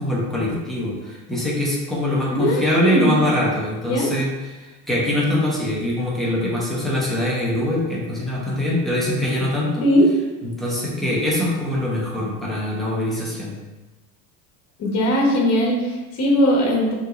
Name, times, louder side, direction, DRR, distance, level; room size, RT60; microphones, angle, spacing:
voice 1, 0.0-4.3 4.5-9.8 10.4-13.5, left 1 dB, ahead, -6 dB, 0.9 m, -23 dB
voice 2, 2.3-3.1 3.8-4.1 9.8-10.0 14.8-16.9, equal, 35° left, -1 dB, 1.1 m, -19 dB
5.4 x 3.1 x 2.5 m, 1.1 s
cardioid pair, 145°, 43 cm